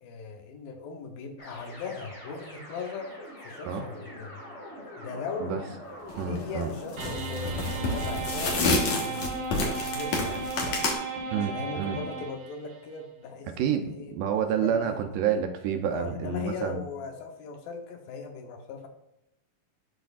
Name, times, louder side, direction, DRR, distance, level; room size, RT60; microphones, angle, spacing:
voice 1, 0.0-3.1 3.4-4.4 5.0-5.6 6.2-10.8 11.3-14.1 14.5-15.0 15.9-18.9, left 4 dB, 80° left, 4 dB, 2.7 m, -39 dB
sound 1, 1.4-9.5, equal, 45° left, 0.9 m, -45 dB
sound 2, 6.1-6.4 6.9-10.9, left 3 dB, 60° left, 2.1 m, -28 dB
voice 2, 6.2-6.7 11.3-12.0 13.5-16.8, right 7 dB, 80° right, 5 dB, 2.1 m, -29 dB
sound 3, 7.0-12.8, right 4 dB, 60° right, 3.6 m, -35 dB
11.5 x 4.3 x 2.4 m, 0.85 s
omnidirectional pair, 4.2 m